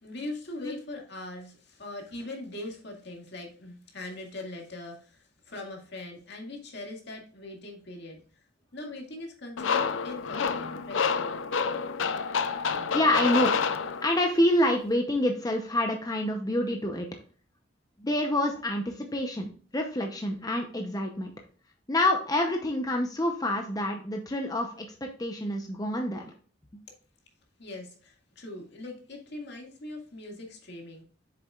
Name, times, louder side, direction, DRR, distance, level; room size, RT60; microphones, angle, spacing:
voice 1, 0.0-8.2 8.7-11.0 27.6-31.0, left 2 dB, 65° left, 1 dB, 2.1 m, -41 dB
sound 1, 9.6-14.4, left 5 dB, 85° left, 0.6 m, -28 dB
voice 2, 12.9-13.5 14.0-17.1 18.0-21.3 21.9-26.2, left 1 dB, 20° left, 3 dB, 0.8 m, -27 dB
8.3 x 6.7 x 2.4 m, 0.42 s
head